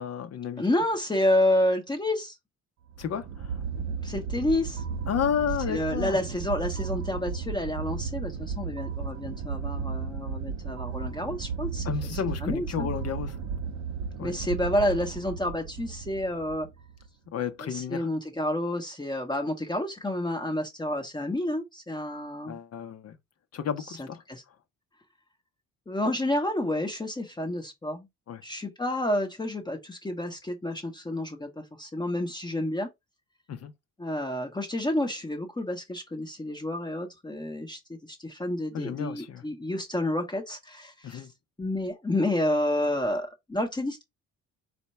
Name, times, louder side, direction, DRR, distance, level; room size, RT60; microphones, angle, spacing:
voice 1, 0.0-0.6 3.0-3.6 5.1-6.2 11.8-13.4 14.1-14.3 17.3-18.1 22.5-23.2 23.5-24.2 28.3-28.4 33.5-33.7 38.7-39.4 41.0-41.3, left 8 dB, 55° left, 0.7 m, -32 dB
voice 2, 0.6-2.4 4.0-4.8 5.7-12.9 14.2-16.7 17.6-22.6 23.9-24.4 25.9-28.1 28.4-32.9 34.0-37.8 38.1-41.3 41.6-44.0, left 1 dB, 15° left, 0.9 m, -29 dB
sound 1, 2.9-17.1, right 6 dB, 65° right, 0.7 m, -34 dB
4.3 x 2.2 x 4.2 m
cardioid pair, 90°, 30 cm